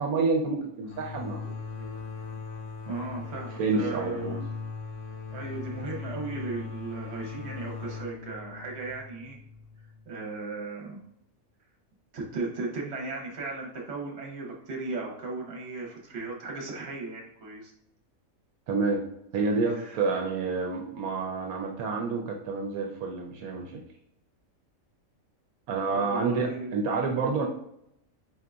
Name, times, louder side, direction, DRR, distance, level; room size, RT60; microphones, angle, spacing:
voice 1, 0.0-2.0 3.6-4.4 18.7-19.1 19.3-23.8 25.7-27.5, right 4 dB, 80° right, 1 dB, 1.1 m, -29 dB
sound 1, 0.9-10.3, left 5 dB, 65° left, 0.9 m, -39 dB
voice 2, 2.9-4.4 5.3-9.4 10.1-11.1 12.1-17.7 19.7-20.0 25.9-26.8, right 3 dB, 50° right, -1 dB, 1.2 m, -36 dB
4.5 x 3.8 x 2.3 m, 0.75 s
omnidirectional pair, 1.5 m